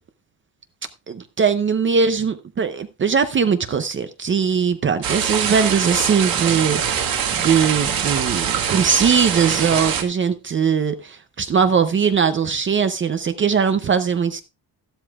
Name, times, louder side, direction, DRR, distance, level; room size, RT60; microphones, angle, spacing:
voice 1, 1.1-14.4, right 6 dB, 30° right, 0.6 m, -20 dB
sound 1, 5.0-10.0, right 8 dB, 60° right, 1.9 m, -23 dB
13.0 x 12.5 x 2.4 m
cardioid pair, 175°, 40 cm